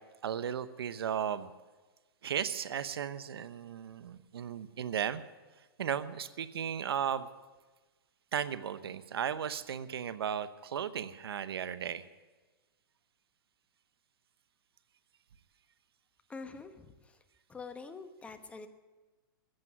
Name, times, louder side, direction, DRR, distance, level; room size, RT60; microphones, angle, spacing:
voice 1, 0.2-1.5 2.2-5.2 5.6-7.3 8.3-12.0, right 8 dB, 80° right, 13 dB, 0.9 m, -35 dB
voice 2, 16.3-18.7, left 4 dB, 10° left, 8 dB, 1.0 m, -46 dB
14.5 x 7.6 x 9.4 m, 1.3 s
hypercardioid pair, 140°, 12 cm